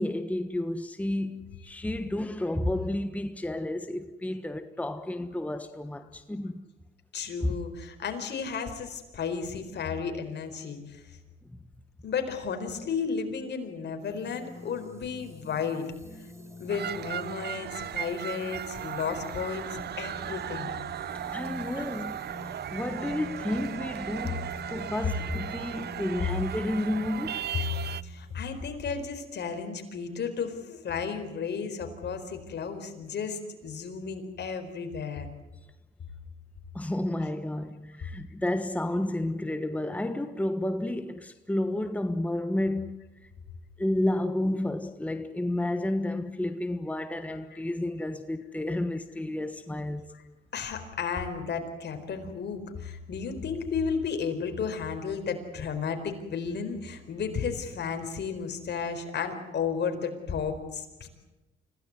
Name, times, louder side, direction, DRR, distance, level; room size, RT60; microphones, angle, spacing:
voice 1, 0.0-6.6 7.4-7.6 21.3-22.2 22.7-27.5 36.7-43.0 43.8-50.1, left 1 dB, 5° left, 1.4 m, -31 dB
voice 2, 7.1-11.0 12.0-15.9 16.6-20.7 21.7-21.8 28.0-35.3 50.1-50.2 50.5-61.1, left 6 dB, 60° left, 4.4 m, -33 dB
sound 1, 14.0-28.7, left 1 dB, 15° right, 5.2 m, -46 dB
sound 2, 16.7-28.0, right 10 dB, 55° right, 0.7 m, -37 dB
26.0 x 16.5 x 9.6 m
cardioid pair, 90°, 20 cm